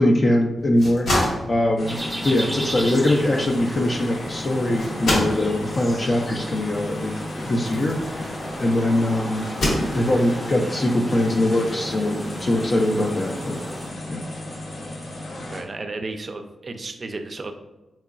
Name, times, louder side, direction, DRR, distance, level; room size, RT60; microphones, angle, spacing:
voice 1, 0.0-2.0 2.2-7.1 7.4-9.5 9.9-13.6 14.1-14.2, left 1 dB, 45° left, 0 dB, 0.4 m, -22 dB
sound 1, 0.6-8.7 9.3-10.4, left 1 dB, 90° left, 1.3 m, -29 dB
sound 2, 1.8-15.6, left 1 dB, 70° left, 0.9 m, -35 dB
sound 3, 1.9-13.9, equal, ahead, 0.6 m, -35 dB
voice 2, 15.5-17.5, right 3 dB, 45° right, 6 dB, 0.4 m, -33 dB
3.8 x 2.9 x 2.4 m, 1.1 s
cardioid pair, 85°, 0 cm